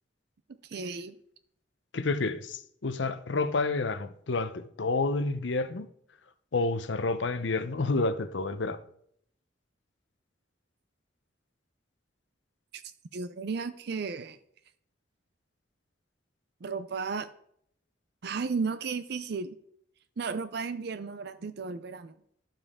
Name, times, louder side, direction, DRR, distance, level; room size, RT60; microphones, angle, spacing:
voice 1, 0.5-1.2 12.7-12.8 13.1-14.4 16.6-17.3 18.2-19.6 20.2-22.1, right 5 dB, 60° right, 0.5 m, -34 dB
voice 2, 1.9-5.9 6.5-8.8, left 3 dB, 75° left, 0.7 m, -29 dB
12.0 x 7.2 x 3.6 m
head